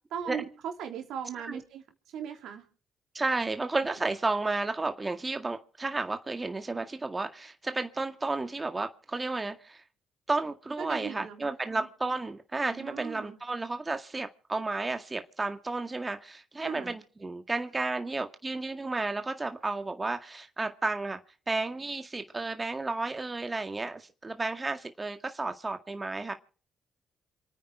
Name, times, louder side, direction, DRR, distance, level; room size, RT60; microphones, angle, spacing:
voice 1, 0.1-1.8 2.1-2.6 10.8-11.9 12.7-13.4 16.6-17.0, right 8 dB, 75° right, 3.3 m, -38 dB
voice 2, 3.1-9.8 10.3-21.2 21.5-26.3, right 3 dB, 25° right, 1.9 m, -32 dB
28.0 x 9.6 x 4.9 m
hypercardioid pair, 50°, 0 cm